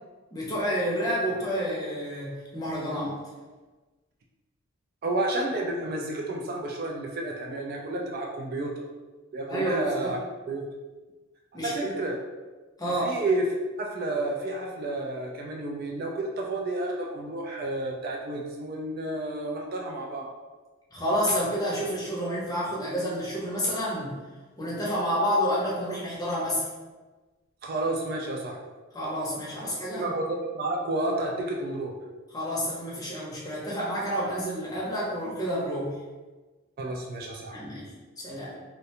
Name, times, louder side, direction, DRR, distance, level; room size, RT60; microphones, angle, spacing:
voice 1, 0.3-3.2 9.5-10.1 11.5-11.9 12.8-13.1 20.9-24.2 24.6-26.7 28.9-30.1 32.3-36.0 37.5-37.9 38.2-38.5, equal, 20° left, -6 dB, 0.6 m, -29 dB
voice 2, 5.0-8.7 9.3-10.2 10.5-10.6 11.6-12.2 13.0-13.4 13.8-20.3 27.6-28.6 29.9-31.9 36.8-37.6, right 2 dB, 45° right, -1 dB, 0.3 m, -31 dB
2.4 x 2.1 x 2.8 m, 1.3 s
head